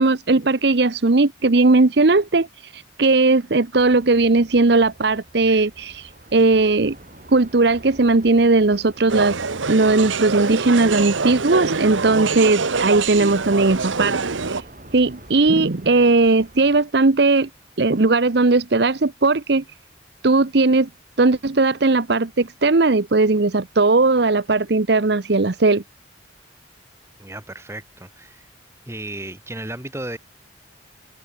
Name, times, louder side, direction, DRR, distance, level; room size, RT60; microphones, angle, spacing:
voice 1, 0.0-7.0 7.3-9.4 9.7-14.2 14.5-14.6 14.9-17.5 17.8-19.6 20.2-20.9 21.2-25.8, right 3 dB, 60° right, 0.8 m, -18 dB
sound 1, 3.8-16.8, right 1 dB, 45° right, 4.3 m, -46 dB
sound 2, 9.1-14.6, right 4 dB, 85° right, 1.3 m, -25 dB
voice 2, 27.2-28.5 28.9-30.2, right 1 dB, 15° right, 2.7 m, -34 dB
open air
head